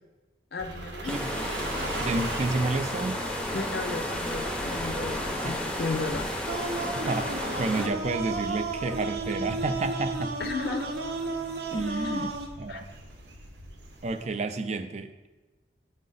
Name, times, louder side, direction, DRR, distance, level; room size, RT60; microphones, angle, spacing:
voice 1, 0.5-1.1 3.5-6.3 10.4-10.9 12.0-12.2 12.7-12.8, left 3 dB, 60° left, 8 dB, 0.5 m, -34 dB
sound 1, 0.6-14.2, right 1 dB, 90° right, 1.1 m, -41 dB
sound 2, 1.1-7.9, left 1 dB, 5° left, 0.6 m, -32 dB
voice 2, 2.1-3.2 6.9-10.3 11.7-12.3 12.6-12.9 14.0-15.1, right 3 dB, 40° right, 10 dB, 0.4 m, -30 dB
sound 3, 6.5-12.5, right 3 dB, 65° right, 0.8 m, -33 dB
7.5 x 5.1 x 3.9 m, 1.2 s
head